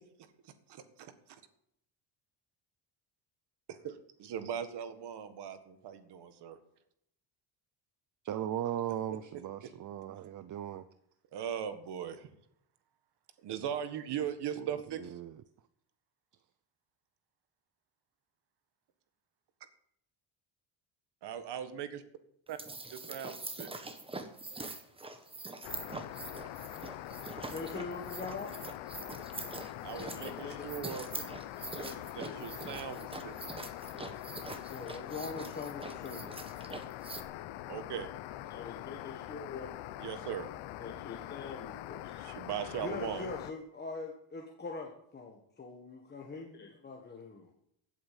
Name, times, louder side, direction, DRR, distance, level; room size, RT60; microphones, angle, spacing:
voice 1, 0.4-1.4 3.7-6.6 11.3-12.3 13.4-15.0 21.2-22.0 22.5-22.6 22.9-23.3 23.6-23.7 29.8-31.1 32.1-33.4 37.7-38.1 40.0-40.5 42.2-43.3, right 9 dB, 55° right, 1.7 m, -39 dB
voice 2, 8.2-10.9 14.6-15.4, right 11 dB, 40° right, 0.6 m, -38 dB
sound 1, 22.5-37.2, right 3 dB, 10° right, 1.2 m, -44 dB
sound 2, 25.6-43.5, left 14 dB, 80° left, 0.8 m, -44 dB
voice 3, 27.5-28.5 29.9-30.7 31.1-31.3 31.6-32.4 34.6-36.3 36.6-36.8 38.5-39.8 40.8-42.0 42.8-47.5, left 4 dB, 20° left, 1.5 m, -43 dB
16.0 x 8.4 x 7.4 m
cardioid pair, 165°, 47 cm